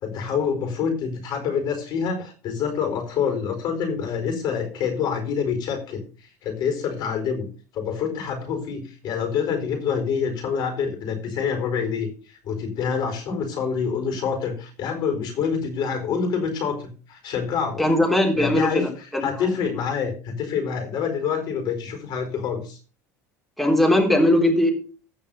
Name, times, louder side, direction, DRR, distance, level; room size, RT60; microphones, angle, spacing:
voice 1, 0.0-7.5 7.7-17.8 18.3-22.8, left 6 dB, 55° left, 6 dB, 4.4 m, -26 dB
voice 2, 17.8-19.2 23.6-24.7, left 1 dB, ahead, 0 dB, 3.6 m, -19 dB
15.5 x 5.4 x 5.5 m, 0.37 s
hypercardioid pair, 75°, 8 cm